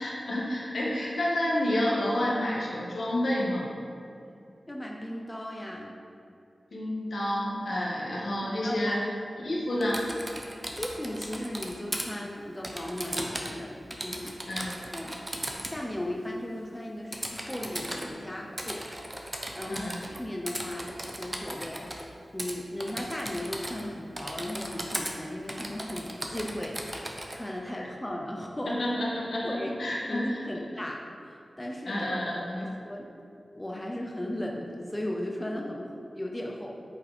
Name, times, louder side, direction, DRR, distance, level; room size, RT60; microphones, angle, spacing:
voice 1, 0.0-3.7 6.7-9.0 9.4-10.0 14.5-14.7 19.7-20.0 28.7-30.4 31.8-32.7, left 1 dB, 75° left, -5 dB, 1.9 m, -29 dB
voice 2, 4.7-6.0 8.6-9.0 10.8-14.3 14.9-18.8 19.2-22.1 22.3-27.0 27.3-28.8 29.4-29.7 30.1-33.1 33.5-36.8, left 1 dB, 15° left, -1 dB, 0.7 m, -36 dB
Typing, 9.8-12.1 12.6-13.6 13.9-15.8 17.1-18.1 18.6-20.2 20.5-22.0 22.4-22.5 22.8-23.9 24.2-25.1 25.5-27.4, right 1 dB, 15° right, 0.9 m, -37 dB
8.5 x 5.2 x 4.3 m, 2.6 s
wide cardioid pair, 80°, 0 cm